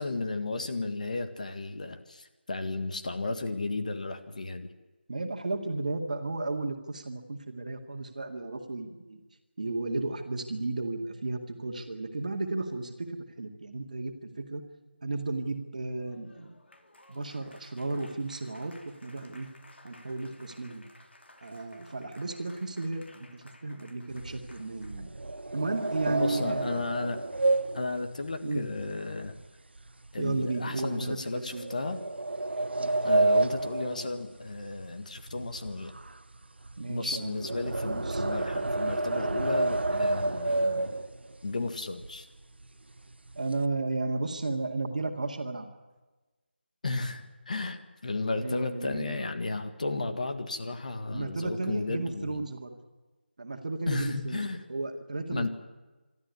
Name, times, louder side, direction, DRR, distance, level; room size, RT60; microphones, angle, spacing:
voice 1, 0.0-4.7 26.1-27.2 27.7-29.4 30.1-32.0 33.0-35.9 36.9-41.0 41.4-42.3 46.8-52.4 53.9-54.6 55.3-55.5, left 3 dB, 40° left, 8 dB, 1.7 m, -34 dB
voice 2, 5.1-9.2 9.6-14.6 15.0-16.5 17.1-19.5 19.8-20.8 21.4-25.1 25.5-26.8 28.4-28.7 30.2-31.6 32.7-32.9 36.8-37.6 37.9-38.2 43.3-45.7 48.4-49.3 51.1-52.8 53.4-55.5, right 2 dB, 45° right, 5 dB, 2.2 m, -34 dB
Applause, 15.9-25.1, left 1 dB, 75° left, 3.1 m, -57 dB
sound 1, 24.1-29.5 29.8-30.1 30.6-30.7 31.5-34.9 35.1-41.4 42.0-42.1 42.4-42.6 43.0-43.6, right 2 dB, 70° right, 1.2 m, -30 dB
24.0 x 13.0 x 9.7 m, 1.2 s
figure-of-eight pair, 175°, 6 cm